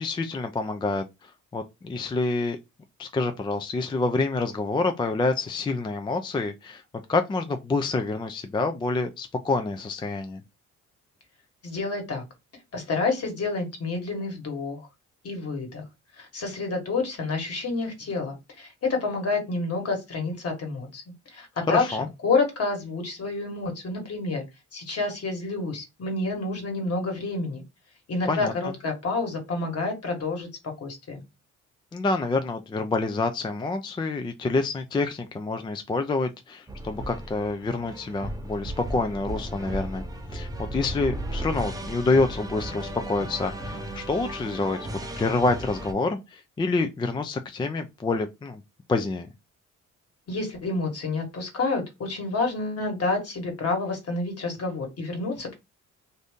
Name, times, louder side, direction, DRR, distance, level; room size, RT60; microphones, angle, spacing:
voice 1, 0.0-2.6 3.0-6.8 7.1-10.4 21.7-22.1 28.3-28.7 31.9-40.1 40.3-44.8 45.1-48.6 48.9-49.3, left 3 dB, 15° left, 0.3 m, -27 dB
voice 2, 11.6-12.2 12.7-14.8 15.2-15.8 16.2-21.0 21.3-22.0 22.2-24.4 24.7-27.6 28.1-30.5 30.8-31.2 50.3-55.6, left 3 dB, 50° left, 1.4 m, -29 dB
sound 1, 36.7-45.9, right 1 dB, 10° right, 0.7 m, -35 dB
2.7 x 2.6 x 3.4 m
cardioid pair, 90°, 30 cm